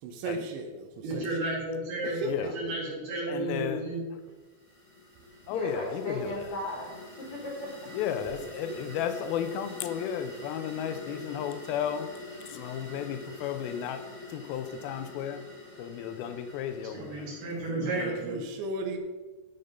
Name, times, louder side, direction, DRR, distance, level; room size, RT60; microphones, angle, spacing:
voice 1, 0.0-1.5 2.0-2.7 8.7-8.8 17.5-19.0, right 2 dB, 85° right, 4 dB, 3.2 m, -36 dB
voice 2, 1.0-2.2 2.5-4.0 16.9-18.4, right 2 dB, 65° right, -5 dB, 3.6 m, -32 dB
voice 3, 3.3-3.9 5.5-6.5 7.9-12.1 12.5-15.4 15.8-17.4 17.9-18.3, left 9 dB, 85° left, 9 dB, 2.1 m, -34 dB
sound 1, 4.2-17.6, left 2 dB, 25° left, 0.6 m, -46 dB
voice 4, 5.5-7.9, left 2 dB, 55° left, -2 dB, 2.2 m, -35 dB
12.5 x 5.2 x 5.5 m, 1.3 s
omnidirectional pair, 5.1 m